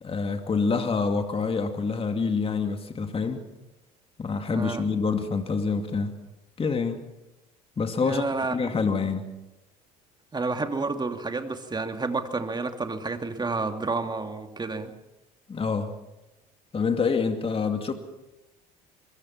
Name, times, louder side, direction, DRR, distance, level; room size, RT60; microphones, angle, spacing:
voice 1, 0.0-3.4 4.2-6.1 6.6-7.0 7.8-8.2 8.5-9.3 15.5-15.9 16.7-17.9, left 5 dB, 30° left, 6 dB, 2.4 m, -26 dB
voice 2, 4.5-4.9 8.0-8.7 10.3-14.9, right 3 dB, 20° right, 6 dB, 2.6 m, -30 dB
23.5 x 23.0 x 5.9 m, 0.99 s
hypercardioid pair, 65°, 20 cm